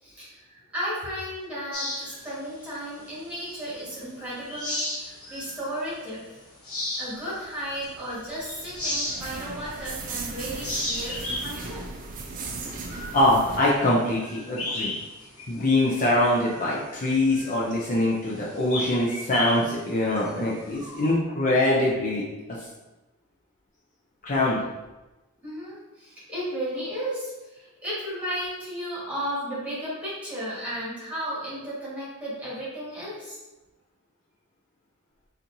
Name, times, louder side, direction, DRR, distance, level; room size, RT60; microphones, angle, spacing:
voice 1, 0.0-6.4 7.0-11.9 25.4-33.4, equal, 5° right, -9 dB, 1.5 m, -34 dB
Tree and Bird, 1.7-3.9 4.3-5.6 6.0-6.1 6.5-10.2 10.5-15.1 15.4-15.5 16.0-21.1, left 1 dB, 70° left, 1.1 m, -35 dB
sound 1, 7.7-13.6, right 3 dB, 40° right, 0.4 m, -37 dB
voice 2, 13.1-14.9 15.5-22.2 24.2-24.6, left 1 dB, 35° left, -5 dB, 0.5 m, -23 dB
4.2 x 2.6 x 2.6 m, 1.1 s
head